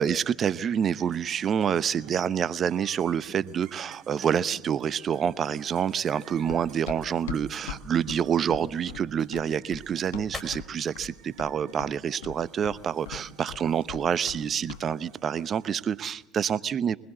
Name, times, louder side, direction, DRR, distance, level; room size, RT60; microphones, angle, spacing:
voice 1, 0.0-17.0, right 8 dB, 40° right, 17 dB, 0.8 m, -27 dB
sound 1, 0.7-16.3, right 9 dB, 60° right, 1.9 m, -52 dB
sound 2, 3.2-15.1, left 2 dB, 20° left, 4.7 m, -52 dB
Run, 6.5-10.7 11.0-11.5 11.8-14.4 14.7-14.9, left 9 dB, 75° left, 1.3 m, -40 dB
23.5 x 20.5 x 8.0 m, 0.92 s
hypercardioid pair, 65°, 0 cm